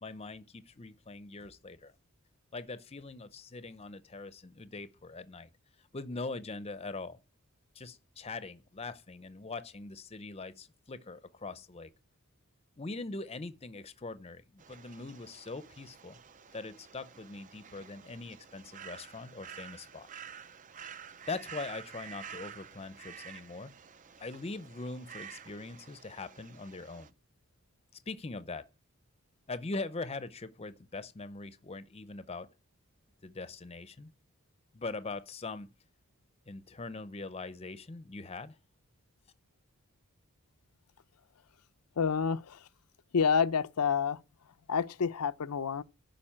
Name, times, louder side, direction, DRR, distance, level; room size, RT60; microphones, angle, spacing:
voice 1, 0.0-1.9 2.5-5.5 5.9-7.2 7.7-11.9 12.8-16.2 16.5-20.1 21.3-23.7 24.2-27.1 28.1-28.7 29.5-32.5 33.2-34.1 34.7-35.7 36.5-38.6, left 3 dB, 25° left, 0.6 m, -42 dB
sound 1, 14.6-27.1, right 7 dB, 35° right, 0.5 m, -50 dB
voice 2, 42.0-42.7 43.1-44.2 44.7-45.8, left 6 dB, 85° left, 0.6 m, -28 dB
11.5 x 5.3 x 8.8 m
head